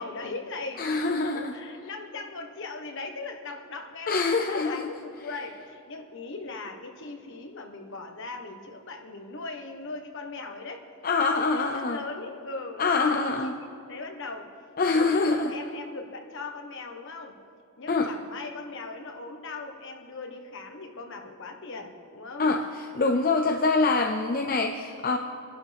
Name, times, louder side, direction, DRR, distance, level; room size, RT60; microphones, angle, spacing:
voice 1, 0.0-10.8 11.3-14.5 14.9-17.4 17.8-22.5, left 3 dB, 60° left, 4 dB, 1.3 m, -39 dB
voice 2, 0.8-1.5 4.1-4.8 11.0-12.0 12.8-13.5 14.8-15.5 17.9-18.1 22.4-25.2, left 3 dB, 40° left, 4 dB, 0.6 m, -25 dB
25.5 x 11.5 x 3.5 m, 2.3 s
head